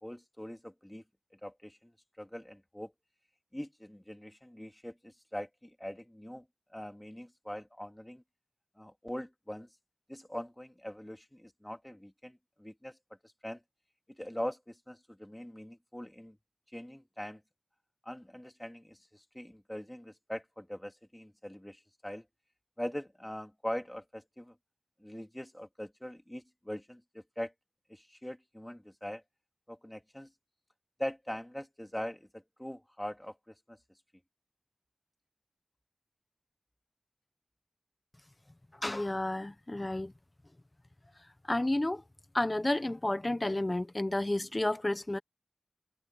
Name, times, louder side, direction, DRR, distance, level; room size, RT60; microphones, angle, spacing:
voice 1, 0.0-1.0 1.4-1.9 2.2-2.9 3.5-8.2 8.8-9.7 10.1-13.0 13.4-13.6 14.1-16.4 16.7-17.4 18.0-22.2 22.8-24.5 25.0-27.5 27.9-29.2 29.7-30.3 31.0-33.8, equal, 10° left, 2.8 m, -42 dB
voice 2, 38.8-40.1 41.5-42.0 42.3-45.2, left 1 dB, 25° left, 1.2 m, -31 dB
wide cardioid pair, 65°, 0 cm